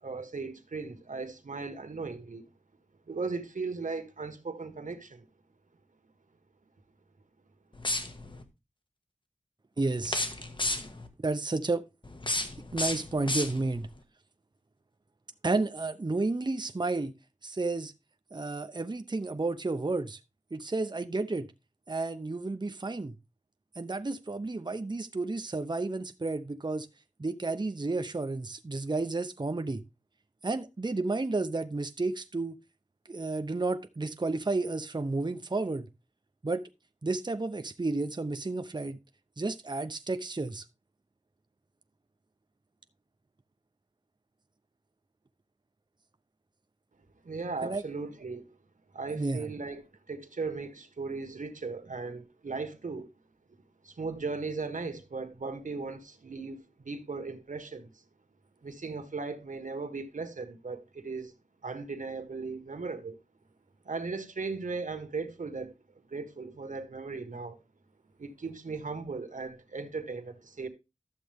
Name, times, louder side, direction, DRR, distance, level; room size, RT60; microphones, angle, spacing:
voice 1, 0.0-2.4 3.1-5.3 47.2-48.4 48.9-53.1 53.8-57.9 58.6-61.3 61.6-63.2 63.8-65.7 66.1-67.6 68.2-70.7, right 4 dB, 90° right, 1.5 m, -37 dB
sound 1, 7.7-8.4 10.0-11.1 12.0-13.9, left 2 dB, 40° left, 1.7 m, -33 dB
voice 2, 9.8-10.2 11.2-11.8 12.7-13.9 15.4-17.1 17.4-17.9 18.3-20.2 20.5-21.5 21.9-23.2 23.8-26.9 27.2-29.8 30.4-32.6 33.1-35.9 36.4-36.7 37.0-39.0 39.4-40.6 47.6-47.8 49.1-49.5, right 3 dB, 35° right, 0.8 m, -31 dB
12.5 x 7.6 x 3.5 m
wide cardioid pair, 45°, 13 cm